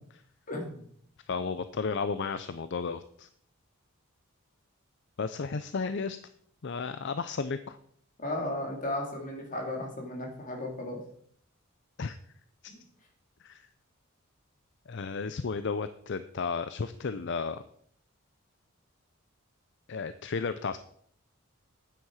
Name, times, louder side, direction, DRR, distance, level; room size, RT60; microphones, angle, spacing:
voice 1, 0.5-0.8 8.2-11.0 12.7-12.8, left 1 dB, 40° left, 0 dB, 3.1 m, -35 dB
voice 2, 1.3-3.3 5.2-6.2 6.6-7.8 12.0-12.2 12.6-12.7 13.4-13.7 14.9-17.6 19.9-20.8, left 5 dB, 55° left, 12 dB, 0.5 m, -33 dB
9.4 x 9.2 x 4.9 m, 0.62 s
head